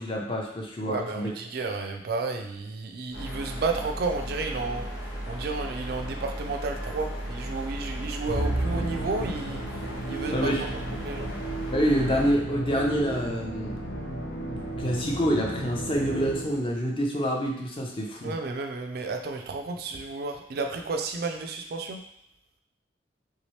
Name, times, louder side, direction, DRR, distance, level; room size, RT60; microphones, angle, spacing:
voice 1, 0.0-1.3 10.3-10.6 11.7-14.0 14.8-18.3, equal, 30° left, -1 dB, 0.5 m, -27 dB
voice 2, 0.9-4.9 5.3-9.6 10.1-10.7 11.0-11.3 18.2-22.0, right 3 dB, 55° right, 4 dB, 0.3 m, -32 dB
sound 1, 3.1-12.3, equal, 90° left, 1.2 m, -36 dB
Musical instrument, 8.3-16.8, right 1 dB, 75° left, 0.7 m, -33 dB
3.3 x 2.8 x 3.1 m, 0.74 s
head